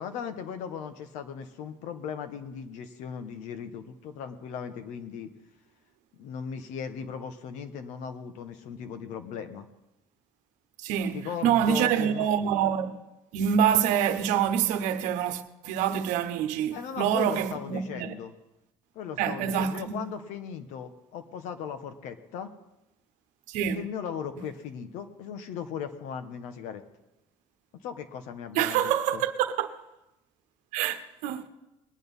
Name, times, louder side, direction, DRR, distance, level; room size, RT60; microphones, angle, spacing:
voice 1, 0.0-5.3 6.1-9.7 11.1-12.3 16.7-18.3 18.9-22.5 23.6-26.8 27.8-29.2, left 7 dB, 85° left, 1.3 m, -38 dB
voice 2, 10.8-13.0 13.3-18.1 19.2-19.9 23.5-23.9 28.5-29.7 30.7-31.4, right 9 dB, 85° right, 1.0 m, -26 dB
20.5 x 8.3 x 5.5 m
cardioid pair, 95°, 12 cm